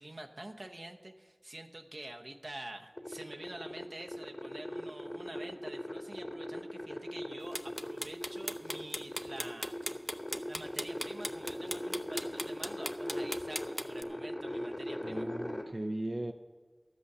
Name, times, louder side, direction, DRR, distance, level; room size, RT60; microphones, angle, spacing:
voice 1, 0.0-9.7 10.5-15.3, right 1 dB, 80° right, 3 dB, 0.9 m, -47 dB
sound 1, 3.0-15.6, left 1 dB, 50° left, 2.0 m, -40 dB
sound 2, 7.5-14.0, equal, 10° right, 0.6 m, -38 dB
voice 2, 15.0-16.3, right 1 dB, 55° right, 4 dB, 0.5 m, -37 dB
12.5 x 8.2 x 6.8 m, 1.5 s
wide cardioid pair, 40°, 0 cm